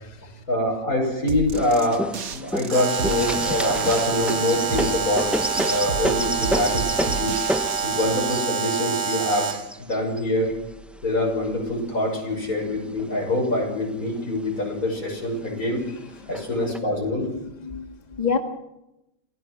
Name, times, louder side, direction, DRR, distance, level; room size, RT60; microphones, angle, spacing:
voice 1, 0.5-2.1 2.3-5.4 5.6-7.4 7.8-9.5 9.9-10.6 11.0-15.8 16.3-17.3, left 1 dB, 85° left, -1 dB, 6.8 m, -25 dB
sound 1, 1.3-8.1, right 5 dB, 80° right, 1.7 m, -33 dB
sound 2, 1.5-11.8 12.4-13.4 13.8-13.9 14.2-14.9 15.6-15.7 16.3-16.8, equal, ahead, 0.7 m, -30 dB
Alarm, 2.7-9.7, right 6 dB, 50° right, 1.4 m, -27 dB
voice 2, 17.3-18.4, left 6 dB, 30° left, 4 dB, 1.9 m, -28 dB
28.0 x 16.5 x 6.3 m, 0.88 s
omnidirectional pair, 1.5 m